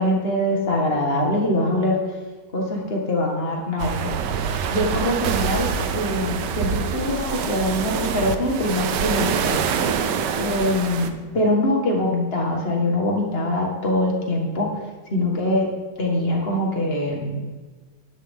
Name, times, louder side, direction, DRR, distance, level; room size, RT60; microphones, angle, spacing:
voice 1, 0.0-2.0 2.5-4.2 4.7-9.6 10.4-14.7 15.1-15.7 16.0-17.4, left 1 dB, 30° left, -1 dB, 2.0 m, -23 dB
sound 1, 3.8-11.1, right 6 dB, 65° right, 1.3 m, -25 dB
10.5 x 10.5 x 3.8 m, 1.3 s
omnidirectional pair, 2.2 m